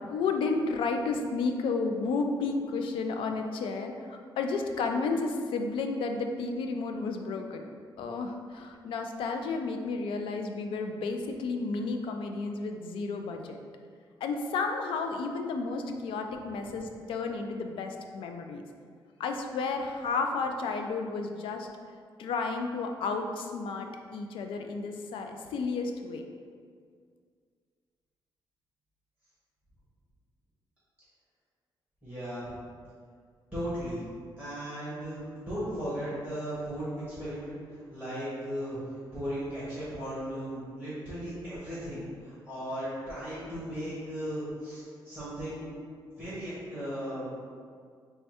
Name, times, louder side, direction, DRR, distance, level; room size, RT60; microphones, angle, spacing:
voice 1, 0.0-7.7 8.0-13.6 14.2-18.6 19.2-21.7 22.2-26.2, left 4 dB, 85° left, 4 dB, 0.3 m, -32 dB
voice 2, 32.0-32.6 33.5-34.0 34.4-37.5 37.9-38.8 39.1-45.7 46.2-47.2, equal, ahead, -11 dB, 1.0 m, -36 dB
3.3 x 2.2 x 4.1 m, 2.1 s
wide cardioid pair, 175°, 9 cm